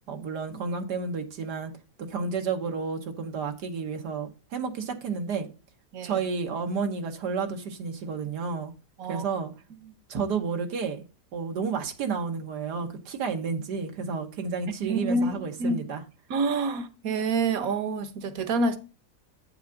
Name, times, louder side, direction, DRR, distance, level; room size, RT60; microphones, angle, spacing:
voice 1, 0.1-1.7 2.1-5.5 6.0-8.7 9.1-9.5 10.1-11.0 11.3-16.0, right 5 dB, 85° right, 1.7 m, -31 dB
voice 2, 14.8-15.8 16.3-18.8, right 3 dB, 65° right, 1.3 m, -27 dB
8.7 x 7.2 x 3.8 m
omnidirectional pair, 1.8 m